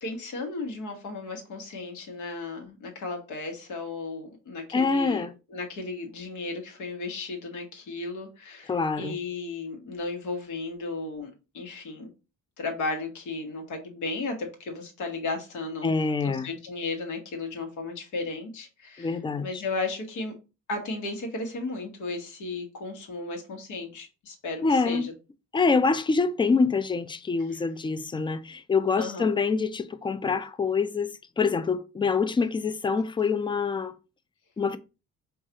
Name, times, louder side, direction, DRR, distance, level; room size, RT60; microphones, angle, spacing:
voice 1, 0.0-12.1 12.6-15.9 16.2-20.3 20.7-25.1 27.5-27.6 28.9-29.3, left 3 dB, 75° left, 1.2 m, -35 dB
voice 2, 4.7-5.3 8.7-9.2 15.8-16.5 19.0-19.6 24.6-25.1 25.5-33.9 34.6-34.8, left 4 dB, 15° left, 0.3 m, -25 dB
4.6 x 2.3 x 2.8 m
cardioid pair, 90°, 30 cm